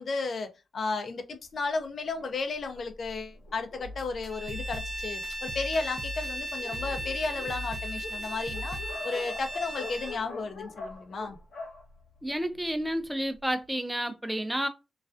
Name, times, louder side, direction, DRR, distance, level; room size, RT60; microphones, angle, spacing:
voice 1, 0.0-8.8 9.0-11.4, left 4 dB, 60° left, 0.5 m, -34 dB
Dog, 2.1-5.1 5.8-5.9 6.2-6.3 6.5-12.9, left 3 dB, 85° left, 0.9 m, -44 dB
sound 1, 3.8-8.9, left 1 dB, 60° right, 0.5 m, -41 dB
Bowed string instrument, 4.3-10.2, right 1 dB, 35° right, 1.0 m, -37 dB
voice 2, 12.2-14.7, equal, 10° right, 0.5 m, -30 dB
2.3 x 2.2 x 2.4 m
cardioid pair, 60°, 0 cm